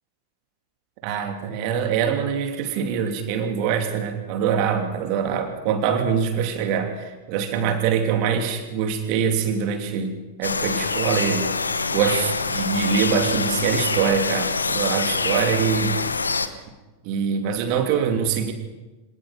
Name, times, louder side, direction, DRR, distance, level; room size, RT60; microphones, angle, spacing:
voice 1, 1.0-16.6 17.0-18.5, right 7 dB, 45° right, 6 dB, 3.0 m, -24 dB
sound 1, 10.4-16.5, left 4 dB, 75° left, 1.1 m, -25 dB
26.0 x 18.5 x 5.9 m, 1.2 s
figure-of-eight pair, 90°, 0 cm